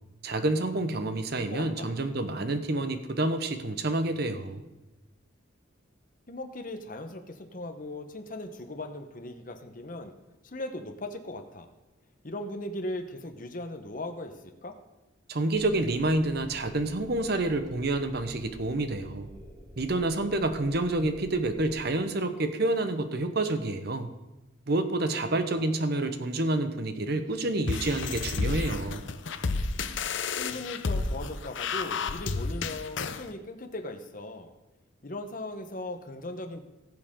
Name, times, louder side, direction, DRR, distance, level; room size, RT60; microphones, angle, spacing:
voice 1, 0.2-4.6 15.3-19.3 19.8-24.1 24.7-29.0, right 2 dB, 55° right, 9 dB, 0.9 m, -28 dB
voice 2, 1.3-1.9 6.3-10.1 10.4-11.7 12.2-14.8 25.3-25.7 30.4-34.5 35.0-36.6, left 1 dB, 45° left, 6 dB, 1.1 m, -38 dB
sound 1, 15.5-21.8, equal, 15° right, 4.1 m, -49 dB
sound 2, 27.7-33.2, left 4 dB, 70° left, 0.7 m, -31 dB
19.0 x 7.6 x 3.8 m, 1.1 s
head